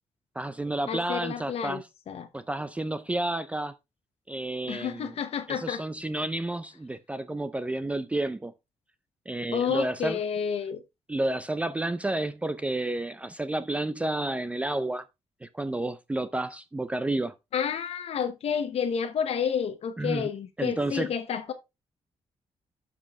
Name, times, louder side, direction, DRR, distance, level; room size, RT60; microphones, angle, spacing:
voice 1, 0.4-1.8 2.3-3.7 4.3-5.1 5.5-8.5 9.3-10.2 11.1-15.0 15.4-17.3 20.0-20.3 20.6-21.1, right 2 dB, 10° right, 0.4 m, -30 dB
voice 2, 0.9-2.3 4.7-5.8 9.5-10.8 17.5-21.5, left 7 dB, 60° left, 0.8 m, -30 dB
11.0 x 5.2 x 3.4 m
wide cardioid pair, 165°, 11 cm